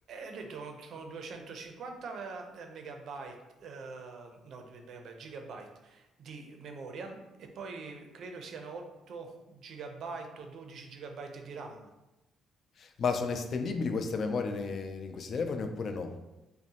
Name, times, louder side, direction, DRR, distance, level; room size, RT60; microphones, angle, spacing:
voice 1, 0.1-3.3 3.6-11.9, right 4 dB, 55° right, 4 dB, 0.5 m, -43 dB
voice 2, 12.8-16.2, left 4 dB, 40° left, 6 dB, 0.3 m, -32 dB
5.4 x 2.1 x 2.8 m, 1.0 s
cardioid pair, 175°, 0 cm